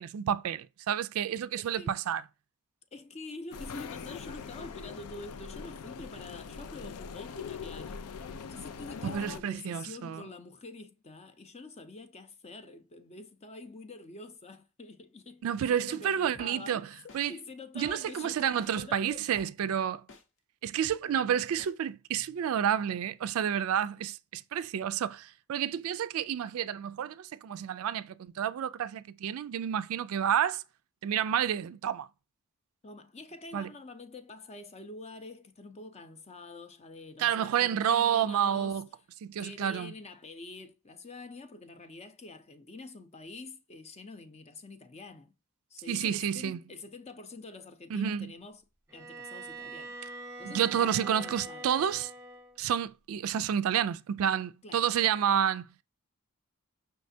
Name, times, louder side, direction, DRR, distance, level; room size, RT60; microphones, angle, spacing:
voice 1, 0.0-2.2 9.0-10.2 15.4-16.8 17.1-17.3 17.8-20.0 20.6-30.6 31.0-32.1 33.5-33.7 37.2-38.9 39.2-39.9 45.9-46.6 47.9-48.3 50.4-52.1 52.6-55.7, right 9 dB, 65° right, 0.3 m, -30 dB
voice 2, 1.6-1.9 2.9-8.0 8.4-16.8 17.3-19.5 23.8-24.0 32.8-38.8 39.4-45.3 45.7-48.6 48.9-49.9 50.4-51.7 54.6-54.9, left 3 dB, 30° left, 0.6 m, -46 dB
sound 1, 3.5-9.4, left 6 dB, 85° left, 0.4 m, -42 dB
sound 2, 16.3-16.5 17.1-17.2 17.8-18.0 18.6-18.7 19.3-19.5 20.1-20.2 20.8-21.0 21.6-21.7, left 2 dB, 55° left, 0.8 m, -51 dB
Bowed string instrument, 48.9-52.6, right 2 dB, 10° right, 0.8 m, -44 dB
5.7 x 3.3 x 2.6 m
head